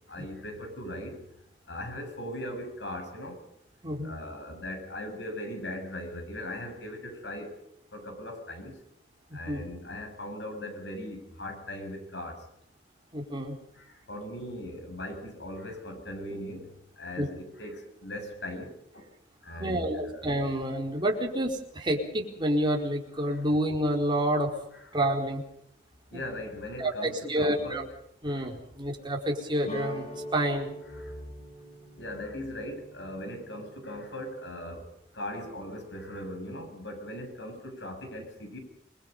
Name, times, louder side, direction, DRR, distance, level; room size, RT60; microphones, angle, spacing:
voice 1, 0.1-1.2 1.7-3.4 4.0-7.5 7.9-8.7 9.3-12.4 13.8-16.7 17.0-19.0 19.4-20.3 23.3-23.4 24.7-24.8 26.1-27.9 28.3-28.5 30.9-31.1 32.0-34.9 35.1-38.6, left 1 dB, 70° left, 5 dB, 7.6 m, -39 dB
voice 2, 3.8-4.2 9.4-9.6 13.1-13.5 17.2-17.3 19.6-24.5 24.9-25.4 26.8-27.8 28.2-30.7, right 1 dB, 25° right, 0 dB, 4.5 m, -28 dB
sound 1, 29.6-34.5, equal, 40° left, 7.7 m, -44 dB
28.5 x 21.5 x 5.6 m, 0.74 s
head